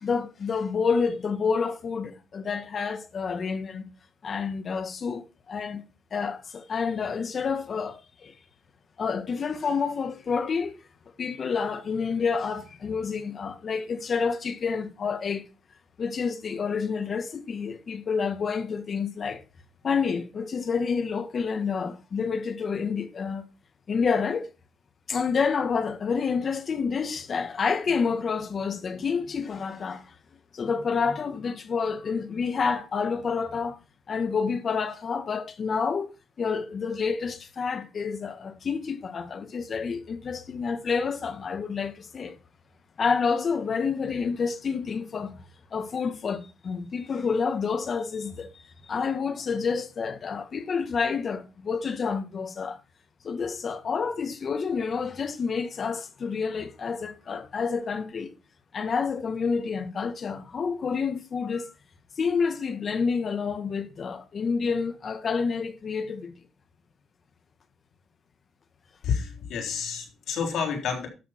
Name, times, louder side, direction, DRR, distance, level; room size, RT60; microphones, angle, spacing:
voice 1, 0.0-3.9 4.2-5.8 6.1-8.3 9.0-10.8 11.2-15.4 16.0-19.4 19.8-23.4 23.9-24.5 25.1-30.1 30.5-33.8 34.1-36.1 36.4-42.4 43.0-45.4 45.7-48.5 48.9-52.8 53.2-58.3 58.7-61.7 62.2-66.3, left 5 dB, 45° left, 1.8 m, -28 dB
voice 2, 69.0-71.1, left 6 dB, 75° left, 3.8 m, -29 dB
12.0 x 6.8 x 4.5 m
cardioid pair, 90°, 0 cm